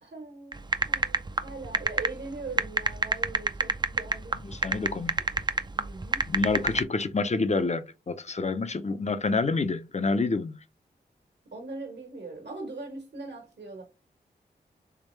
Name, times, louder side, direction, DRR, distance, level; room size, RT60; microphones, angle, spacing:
voice 1, 0.0-4.4 4.6-4.9 5.7-6.3 11.4-13.8, right 3 dB, 70° right, 1.5 m, -41 dB
sound 1, 0.5-6.8, right 3 dB, 25° right, 0.5 m, -26 dB
voice 2, 4.4-5.2 6.3-10.6, left 3 dB, 40° left, 0.7 m, -28 dB
3.6 x 3.1 x 3.2 m
cardioid pair, 50°, 18 cm